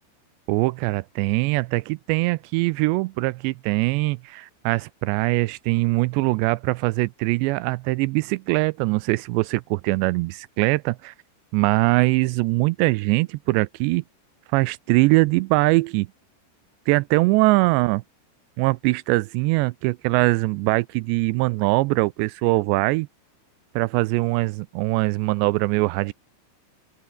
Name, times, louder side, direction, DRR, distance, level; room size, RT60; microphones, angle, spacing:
voice 1, 0.5-11.1 11.5-14.0 14.5-16.1 16.9-18.0 18.6-23.1 23.8-26.1, right 23 dB, 85° right, 2.7 m, -22 dB
open air
omnidirectional pair, 5.0 m